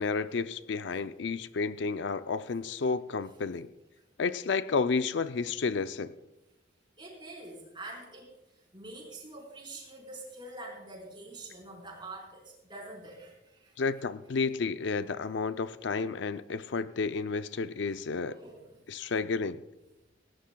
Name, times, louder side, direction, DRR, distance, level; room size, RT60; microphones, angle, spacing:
voice 1, 0.0-3.7 4.2-6.1 13.8-18.4 18.9-19.6, left 4 dB, 70° left, 12 dB, 0.4 m, -31 dB
voice 2, 7.0-8.3 8.7-13.8 18.3-18.7 19.0-19.1, right 2 dB, 25° right, -2 dB, 4.4 m, -45 dB
19.0 x 17.0 x 2.3 m, 0.95 s
head